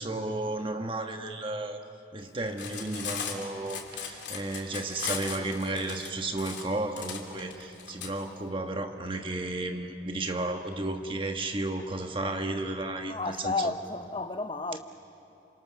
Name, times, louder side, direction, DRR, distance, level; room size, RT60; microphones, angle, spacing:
voice 1, 0.0-1.8 2.1-13.7 14.7-14.8, right 2 dB, 30° right, 1.4 m, -33 dB
Cutlery silverware, 2.5-8.1, left 7 dB, 85° left, 2.9 m, -37 dB
voice 2, 13.1-14.8, left 3 dB, 30° left, 0.7 m, -32 dB
28.5 x 26.5 x 6.4 m
head